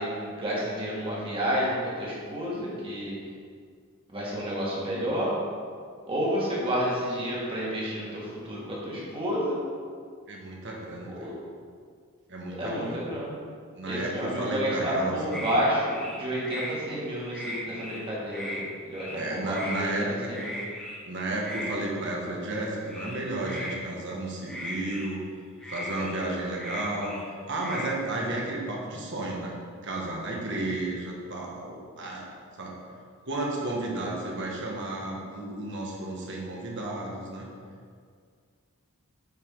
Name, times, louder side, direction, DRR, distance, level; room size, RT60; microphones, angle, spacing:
voice 1, 0.0-3.2 4.1-5.3 6.1-9.6 11.2-11.4 12.6-13.4 13.9-15.8 16.1-18.6 18.9-20.6, equal, 25° right, -6 dB, 1.9 m, -30 dB
voice 2, 10.3-11.3 12.3-13.1 13.7-15.4 19.1-20.3 21.0-25.2 25.7-27.2 27.5-29.5 29.8-32.2 32.6-32.8 33.3-37.5, right 2 dB, 60° right, -2 dB, 1.4 m, -32 dB
sound 1, 15.3-15.6 15.9-16.7 17.1-18.0 18.3-18.6 18.9-19.2 19.5-19.8 20.3-21.0 21.4-21.7 22.9-23.7 24.5-25.1 25.6-27.3 27.6-27.9, left 1 dB, 5° left, 1.5 m, -37 dB
9.1 x 5.0 x 3.9 m, 2.1 s
head